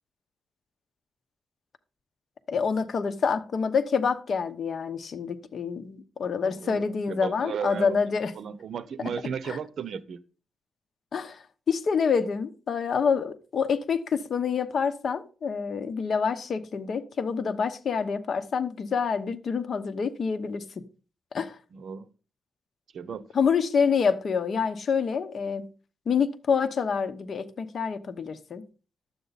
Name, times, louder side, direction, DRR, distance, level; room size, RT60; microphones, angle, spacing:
voice 1, 2.5-8.3 9.0-9.1 9.4-9.6 11.1-20.8 21.3-21.6 23.3-25.7 26.1-28.6, left 6 dB, 60° left, 0.9 m, -27 dB
voice 2, 6.4-8.0 8.4-10.2 21.7-22.1 22.9-23.3, right 7 dB, 75° right, 0.8 m, -35 dB
12.0 x 7.9 x 4.1 m
cardioid pair, 105°, 0 cm